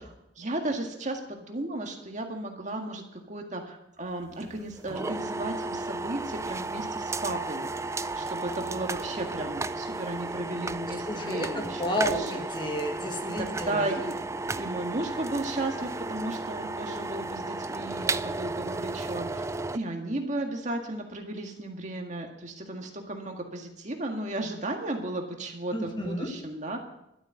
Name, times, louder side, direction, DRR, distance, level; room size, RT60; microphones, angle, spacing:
voice 1, 0.4-3.0 3.3-7.8 8.2-12.1 13.2-14.2 14.5-19.4 19.7-26.8, right 2 dB, 40° right, 3 dB, 1.9 m, -34 dB
sound 1, 4.2-19.8, right 3 dB, 15° right, 0.4 m, -34 dB
voice 2, 11.1-14.0 25.7-26.3, equal, 25° left, 3 dB, 1.9 m, -31 dB
12.5 x 8.3 x 8.9 m, 0.84 s
head